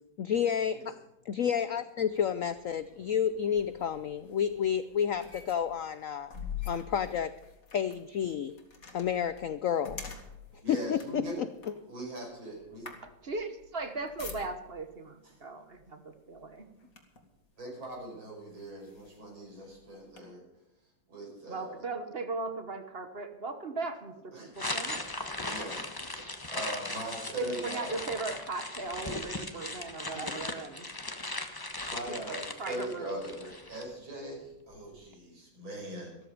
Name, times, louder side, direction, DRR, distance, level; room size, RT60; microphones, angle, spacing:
voice 1, 0.2-6.3 6.7-7.3 7.7-8.6 8.9-10.0 10.7-11.5, left 8 dB, 80° left, 13 dB, 0.7 m, -30 dB
sound 1, 2.1-14.9 15.7-16.0 16.3-17.4 18.0-18.1 18.5-20.2, left 6 dB, 45° left, 2.6 m, -46 dB
voice 2, 10.6-11.4 11.7-12.9 17.6-20.4 21.1-21.8 24.3-24.5 24.8-25.0 25.4-28.0 30.1-30.3 31.9-36.2, right 1 dB, 90° right, -3 dB, 6.4 m, -41 dB
voice 3, 13.0-16.8 21.5-25.0 27.4-30.9 32.1-33.2, right 3 dB, 35° right, 8 dB, 1.2 m, -38 dB
sound 2, 24.6-33.8, left 2 dB, 15° left, 1.0 m, -38 dB
14.0 x 14.0 x 5.3 m, 0.95 s
omnidirectional pair, 2.1 m